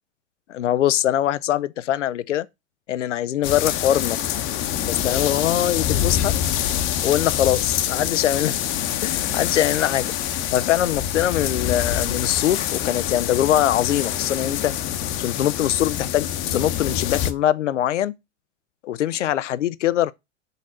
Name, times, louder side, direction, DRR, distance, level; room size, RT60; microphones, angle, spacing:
voice 1, 0.5-2.5 2.9-4.2 4.9-6.3 7.0-8.6 9.0-10.1 10.5-14.7 15.2-18.1 18.8-20.1, left 12 dB, 80° left, 0.5 m, -22 dB
sound 1, 3.4-17.3, left 10 dB, 35° left, 0.9 m, -25 dB
6.6 x 4.2 x 5.9 m
figure-of-eight pair, 95°, 36 cm